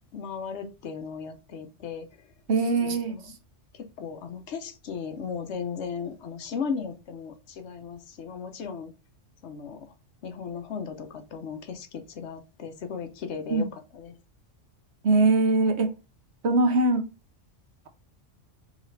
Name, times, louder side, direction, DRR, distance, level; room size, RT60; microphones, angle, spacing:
voice 1, 0.1-2.1 2.8-3.2 3.7-8.9 9.4-9.9 10.2-13.7 13.9-14.1, left 6 dB, 65° left, 0.9 m, -36 dB
voice 2, 2.5-3.3 13.5-13.7 15.0-15.9 16.4-17.0, right 3 dB, 65° right, 1.0 m, -22 dB
4.9 x 3.0 x 3.2 m
omnidirectional pair, 1.3 m